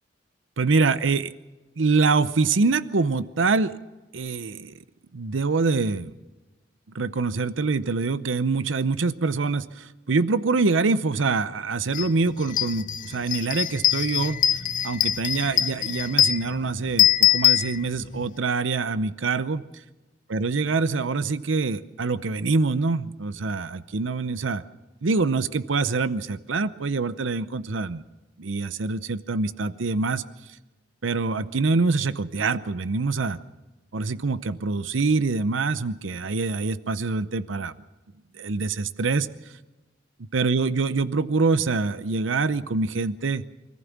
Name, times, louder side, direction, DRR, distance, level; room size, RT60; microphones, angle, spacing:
voice 1, 0.6-1.3 1.8-3.7 4.1-4.7 5.1-6.1 6.9-14.4 14.8-19.7 20.3-24.6 25.0-28.0 28.4-30.2 31.0-33.4 33.9-37.7 38.3-39.3 40.3-43.4, right 4 dB, 85° right, 14 dB, 0.7 m, -25 dB
sound 1, 11.9-12.1 12.4-18.3, left 11 dB, 45° left, 0.6 m, -23 dB
25.0 x 15.0 x 7.2 m, 1.1 s
head